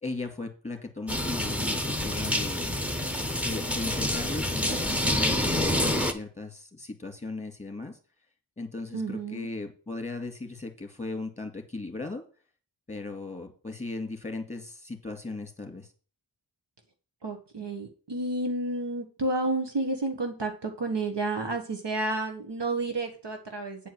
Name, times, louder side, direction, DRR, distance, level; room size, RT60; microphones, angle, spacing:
voice 1, 0.0-2.8 3.4-8.0 8.6-12.2 12.9-15.9, left 3 dB, 15° left, 5 dB, 2.6 m, -37 dB
sound 1, 1.1-6.1, left 1 dB, 5° right, 1.2 m, -27 dB
voice 2, 8.9-9.5 17.2-23.9, right 2 dB, 65° right, 5 dB, 1.4 m, -31 dB
9.1 x 4.6 x 7.7 m, 0.38 s
wide cardioid pair, 85°, 46 cm